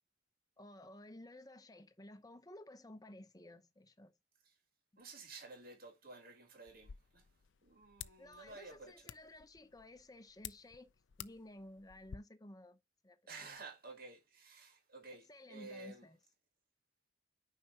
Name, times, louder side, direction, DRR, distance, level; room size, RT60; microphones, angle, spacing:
voice 1, 0.6-4.1 8.2-10.9 11.2-13.5 15.3-16.2, left 1 dB, 20° left, 0.8 m, -55 dB
voice 2, 5.0-7.2 7.6-9.1 13.3-16.1, right 3 dB, 50° right, 2.1 m, -53 dB
sound 1, 6.7-12.2, left 9 dB, 80° left, 0.5 m, -54 dB
9.4 x 5.7 x 2.9 m
head